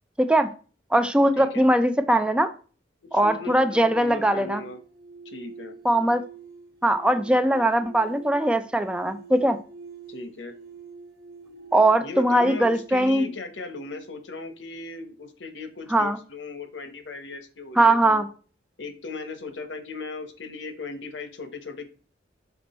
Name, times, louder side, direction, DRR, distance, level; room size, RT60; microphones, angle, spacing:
voice 1, 0.2-0.5 0.9-2.5 3.1-4.6 5.8-6.2 6.8-9.6 11.7-13.3 15.9-16.2 17.8-18.2, right 1 dB, 5° right, 9 dB, 0.4 m, -20 dB
voice 2, 1.3-1.7 3.1-4.8 5.2-5.8 10.1-10.5 12.0-18.2 18.8-21.8, left 3 dB, 80° left, 9 dB, 1.0 m, -37 dB
sound 1, 3.7-14.7, right 5 dB, 60° right, 1.1 m, -46 dB
6.0 x 4.2 x 4.2 m, 0.38 s
head